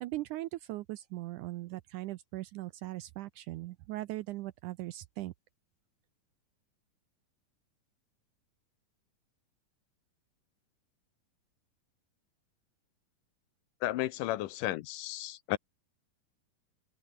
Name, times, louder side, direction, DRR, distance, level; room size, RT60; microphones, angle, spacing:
voice 1, 0.0-5.3, right 17 dB, 75° right, 1.9 m, -39 dB
voice 2, 13.8-15.6, left 15 dB, 75° left, 2.3 m, -33 dB
open air
omnidirectional pair, 4.1 m